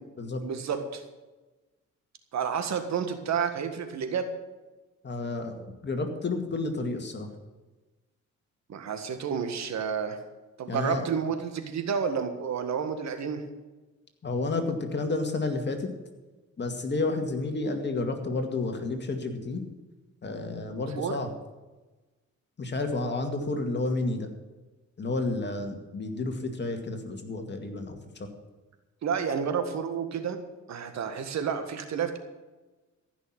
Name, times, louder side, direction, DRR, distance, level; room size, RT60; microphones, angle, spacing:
voice 1, 0.4-1.0 2.3-4.3 8.7-10.2 10.6-13.4 20.9-21.2 29.0-30.4 30.7-32.2, right 7 dB, 65° right, 8 dB, 1.7 m, -30 dB
voice 2, 5.0-7.3 10.7-11.0 14.2-15.9 16.6-19.6 20.2-21.3 22.6-24.3 25.0-28.3, left 3 dB, 35° left, 5 dB, 2.2 m, -31 dB
14.5 x 6.2 x 9.1 m, 1.2 s
cardioid pair, 90°, 30 cm